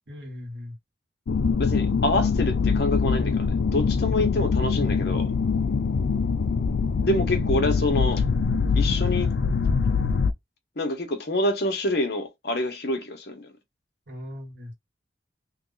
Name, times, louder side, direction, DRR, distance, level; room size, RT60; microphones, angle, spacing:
voice 1, 0.1-0.8 14.1-14.7, left 1 dB, 70° right, 1.5 m, -39 dB
sound 1, 1.3-10.3, left 5 dB, 80° left, 0.4 m, -23 dB
voice 2, 1.6-5.3 7.0-8.2 8.7-9.3 10.8-13.5, left 1 dB, 60° left, 1.0 m, -27 dB
3.2 x 2.4 x 3.9 m
head